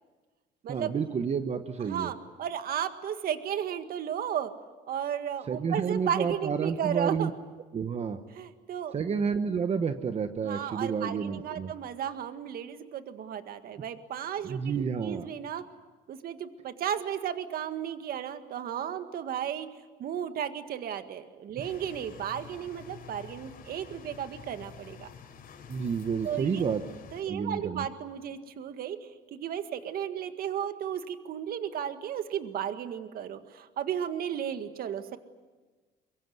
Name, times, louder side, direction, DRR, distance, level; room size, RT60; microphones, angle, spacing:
voice 1, 0.7-2.1 5.5-7.3 7.7-8.2 8.9-11.7 14.4-15.3 25.7-26.8 27.3-27.9, right 6 dB, 40° right, 8 dB, 1.3 m, -30 dB
voice 2, 1.8-4.5 4.9-7.3 8.3-9.0 10.4-15.6 16.1-19.7 20.0-25.1 26.2-26.7 27.1-29.0 29.3-35.2, right 9 dB, 60° right, 9 dB, 1.9 m, -34 dB
sound 1, 21.6-27.2, left 7 dB, 60° left, 4.2 m, -49 dB
23.5 x 23.5 x 9.5 m, 1.3 s
cardioid pair, 110°, 17 cm